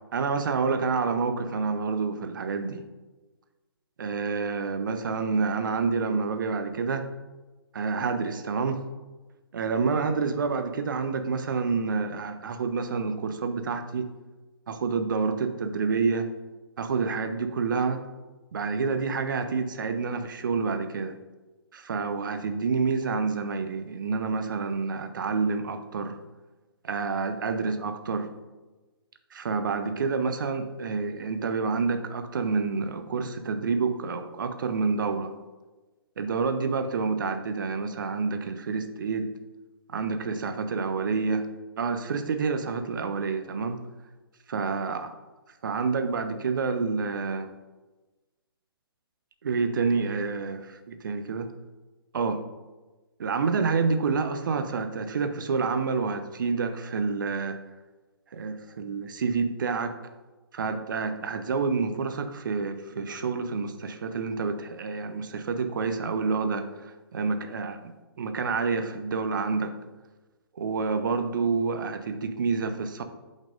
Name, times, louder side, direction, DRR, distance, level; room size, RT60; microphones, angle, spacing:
voice 1, 0.1-2.8 4.0-7.1 7.7-8.8 9.5-14.1 14.7-16.3 16.8-18.0 18.5-21.2 21.7-26.2 26.8-28.3 29.3-35.3 36.2-39.3 39.9-41.5 41.8-43.8 44.5-45.1 45.6-47.5 49.4-51.5 52.1-52.5 53.2-57.6 58.3-60.0 60.5-67.8 68.2-69.8 70.5-73.0, right 4 dB, 55° right, 9 dB, 0.8 m, -28 dB
12.0 x 5.4 x 2.5 m, 1.2 s
figure-of-eight pair, 130°, 13 cm